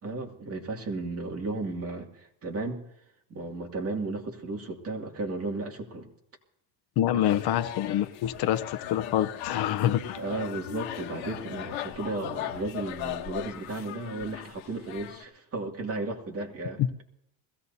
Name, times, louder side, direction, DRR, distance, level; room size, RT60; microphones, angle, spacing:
voice 1, 0.0-2.8 3.3-6.1 10.1-16.8, right 2 dB, 30° right, 1 dB, 2.3 m, -34 dB
voice 2, 7.0-10.2 16.8-16.9, left 11 dB, 55° left, 10 dB, 0.8 m, -26 dB
sound 1, 7.2-15.2, left 12 dB, 80° left, 1.3 m, -38 dB
21.5 x 16.5 x 2.7 m, 0.79 s
cardioid pair, 145°, 47 cm